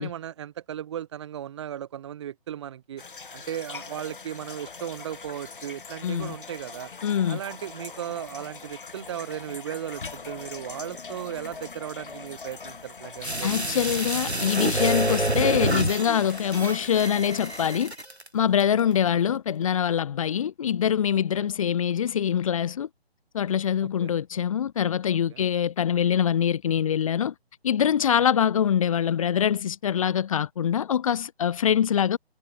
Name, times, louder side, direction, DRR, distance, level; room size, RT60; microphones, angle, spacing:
voice 1, 0.0-3.0 3.3-6.9 7.2-13.9 19.2-19.3 21.1-21.5 23.8-24.2 25.1-25.5, right 10 dB, 25° right, 2.3 m, -36 dB
sound 1, 3.0-17.7, left 4 dB, 55° left, 5.5 m, -42 dB
voice 2, 6.0-6.3 7.0-7.4 13.4-17.9 18.3-22.9 23.3-27.3 27.6-32.2, left 9 dB, 30° left, 3.2 m, -24 dB
sound 2, 13.2-18.3 18.6-18.7, right 1 dB, 90° right, 4.5 m, -28 dB
figure-of-eight pair, 145°, 32 cm